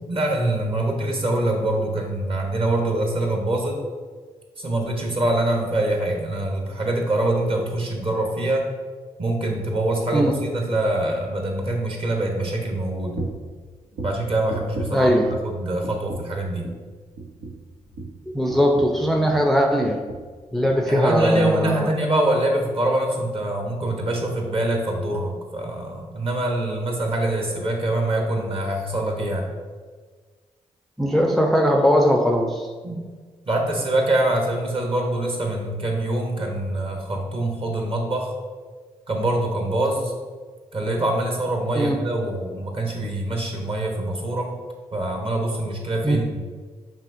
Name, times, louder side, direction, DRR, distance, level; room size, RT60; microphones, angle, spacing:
voice 1, 0.0-3.8 4.6-8.7 9.2-13.2 14.0-16.7 20.8-29.5 32.8-33.1 33.5-38.3 39.1-40.1 40.7-44.5 44.9-46.4, right 1 dB, 40° right, 1 dB, 1.0 m, -24 dB
sound 1, 13.1-13.5 13.9-15.6 15.8-16.4 16.6-16.9 17.2-19.5 19.8-20.3 20.6-20.8 21.2-21.3, right 3 dB, 90° right, 0.6 m, -35 dB
voice 2, 14.9-15.3 18.3-20.0 20.5-21.9 31.0-32.7 41.7-42.0 46.0-46.2, equal, ahead, 2 dB, 0.4 m, -20 dB
5.5 x 2.8 x 2.6 m, 1.5 s
supercardioid pair, 50°, 14 cm